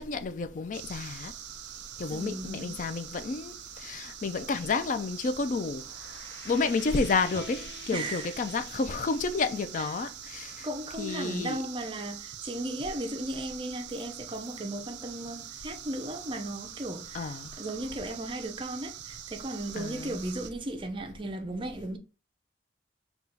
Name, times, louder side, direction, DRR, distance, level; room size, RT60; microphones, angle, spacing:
voice 1, 0.0-1.3 2.0-5.8 6.4-10.7 11.0-11.6 17.1-17.5 19.8-20.2, left 4 dB, 45° left, 0.3 m, -30 dB
sound 1, 0.7-20.5, right 10 dB, 80° right, 0.4 m, -44 dB
voice 2, 2.1-2.8 7.9-8.3 9.8-9.9 10.6-22.0, right 1 dB, 30° right, 0.5 m, -36 dB
sound 2, 5.6-10.8, left 6 dB, 80° left, 0.7 m, -50 dB
sound 3, 7.3-10.5, equal, 15° left, 1.2 m, -52 dB
3.9 x 2.3 x 4.3 m
head